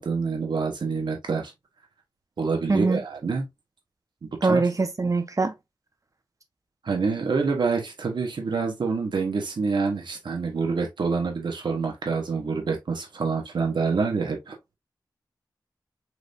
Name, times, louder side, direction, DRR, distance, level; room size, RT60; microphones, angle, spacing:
voice 1, 0.0-1.5 2.4-3.4 4.2-4.6 6.8-14.6, right 4 dB, 80° right, 1.4 m, -27 dB
voice 2, 2.7-3.0 4.4-5.5, right 3 dB, 45° right, 1.1 m, -22 dB
4.8 x 3.4 x 2.6 m
cardioid pair, 55°, 8 cm